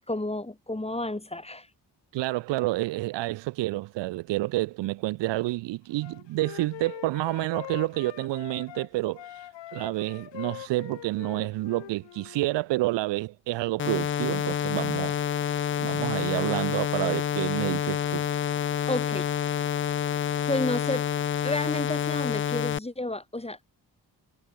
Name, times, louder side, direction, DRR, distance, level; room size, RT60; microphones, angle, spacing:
voice 1, 0.1-1.7 18.9-19.6 20.5-21.0 21.4-23.6, left 2 dB, 15° left, 2.5 m, -31 dB
voice 2, 2.1-9.3 9.7-15.2 15.8-18.2, right 18 dB, 85° right, 0.6 m, -29 dB
Wind instrument woodwind instrument, 6.0-8.9 9.1-12.6, left 14 dB, 85° left, 1.8 m, -43 dB
sound 1, 13.8-22.8, left 9 dB, 30° left, 0.4 m, -28 dB
supercardioid pair, 50°, 42 cm